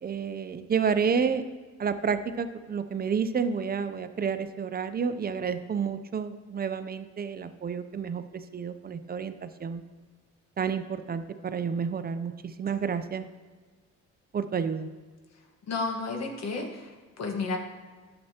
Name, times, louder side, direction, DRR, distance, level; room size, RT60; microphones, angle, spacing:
voice 1, 0.0-1.4 1.8-9.8 10.6-13.3 14.3-14.9, right 6 dB, 30° right, 10 dB, 0.5 m, -30 dB
voice 2, 15.7-17.6, left 3 dB, 60° left, 3 dB, 1.4 m, -32 dB
10.5 x 6.9 x 2.8 m, 1.4 s
cardioid pair, 90°, 30 cm